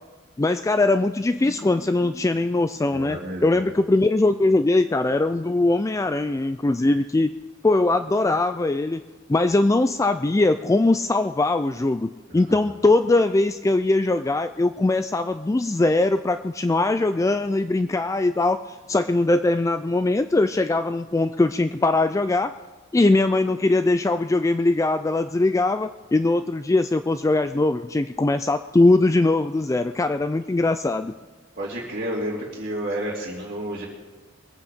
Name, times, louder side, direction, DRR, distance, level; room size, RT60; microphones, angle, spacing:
voice 1, 0.4-7.3 7.6-9.0 9.3-22.6 22.9-31.1, left 2 dB, 15° left, 10 dB, 0.3 m, -21 dB
voice 2, 2.9-3.7 12.3-12.6 31.6-33.9, right 1 dB, 45° right, -6 dB, 2.7 m, -31 dB
22.0 x 8.5 x 5.2 m, 1.3 s
head